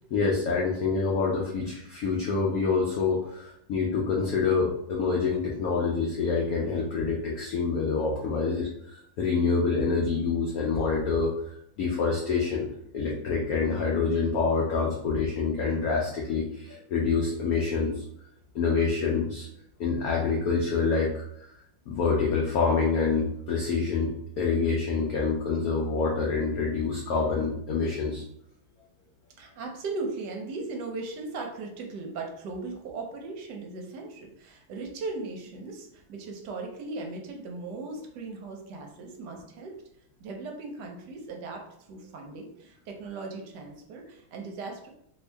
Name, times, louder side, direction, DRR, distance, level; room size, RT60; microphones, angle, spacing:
voice 1, 0.1-11.3 11.8-12.7 12.9-18.0 18.5-19.5 19.8-21.2 21.9-28.2, left 4 dB, 90° left, -2 dB, 0.7 m, -26 dB
voice 2, 29.4-39.8 40.2-44.9, right 3 dB, 70° right, 2 dB, 1.1 m, -38 dB
2.9 x 2.7 x 3.3 m, 0.74 s
omnidirectional pair, 2.2 m